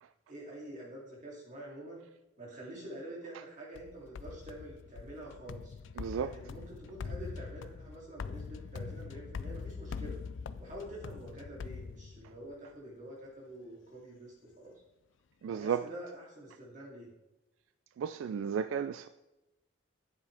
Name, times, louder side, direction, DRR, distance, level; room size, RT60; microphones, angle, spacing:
voice 1, 0.3-2.0 2.4-5.8 6.2-10.2 10.6-14.7 15.4-17.1, right 1 dB, 40° right, 2.7 m, -47 dB
sound 1, 3.7-12.5, left 5 dB, 70° left, 0.4 m, -43 dB
voice 2, 6.0-6.3 15.4-15.8 18.0-19.1, right 7 dB, 85° right, 0.3 m, -33 dB
9.5 x 7.6 x 3.4 m
head